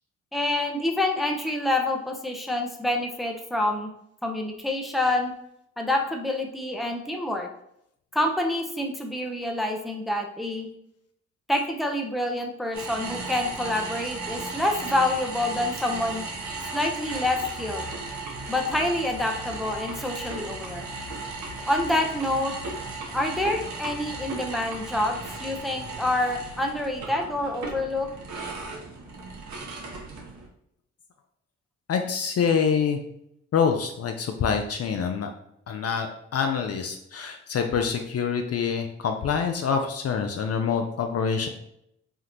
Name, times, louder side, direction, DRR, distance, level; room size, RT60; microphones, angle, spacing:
voice 1, 0.3-3.9 4.2-5.3 5.8-7.5 8.1-10.7 11.5-16.2 16.7-17.9 18.5-20.9 21.7-22.5 23.1-28.1, left 1 dB, ahead, 2 dB, 0.6 m, -27 dB
sound 1, 12.7-30.5, right 3 dB, 55° right, 0.9 m, -36 dB
voice 2, 31.9-33.0 33.5-35.3 35.7-41.5, left 6 dB, 45° left, 5 dB, 0.5 m, -26 dB
3.5 x 2.3 x 2.8 m, 0.75 s
supercardioid pair, 50°, 34 cm